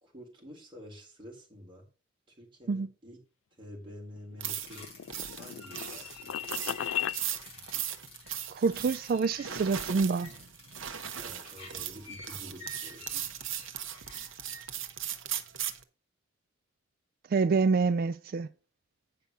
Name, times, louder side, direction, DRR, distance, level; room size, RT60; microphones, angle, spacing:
voice 1, 0.0-1.9 2.3-3.2 3.6-4.9 5.4-6.4 11.1-13.0, equal, 25° right, 3.8 m, -49 dB
sound 1, 4.2-7.2, left 10 dB, 80° left, 0.3 m, -36 dB
sound 2, 4.4-15.8, right 9 dB, 75° right, 1.0 m, -38 dB
sound 3, 4.5-14.6, left 2 dB, 30° left, 4.8 m, -49 dB
voice 2, 8.5-10.3 17.3-18.5, right 4 dB, 45° right, 0.3 m, -27 dB
9.0 x 5.6 x 5.3 m
head